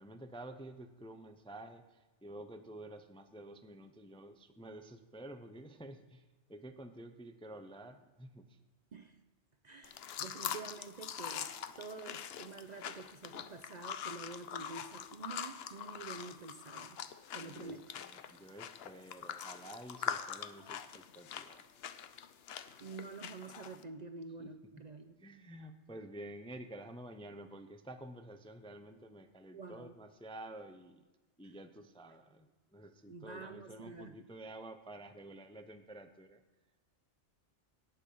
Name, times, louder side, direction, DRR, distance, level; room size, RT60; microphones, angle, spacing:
voice 1, 0.0-6.2 6.5-8.6 17.5-21.6 24.4-24.5 25.2-31.0 31.4-36.4, right 1 dB, 5° left, 7 dB, 0.5 m, -50 dB
voice 2, 9.6-17.0 17.3-17.9 22.8-25.1 29.5-29.9 31.4-31.5 33.1-34.2, right 4 dB, 45° right, 6 dB, 0.6 m, -48 dB
sound 1, 9.8-23.8, left 8 dB, 60° left, 0.8 m, -44 dB
18.0 x 6.8 x 5.4 m, 1.2 s
omnidirectional pair, 1.2 m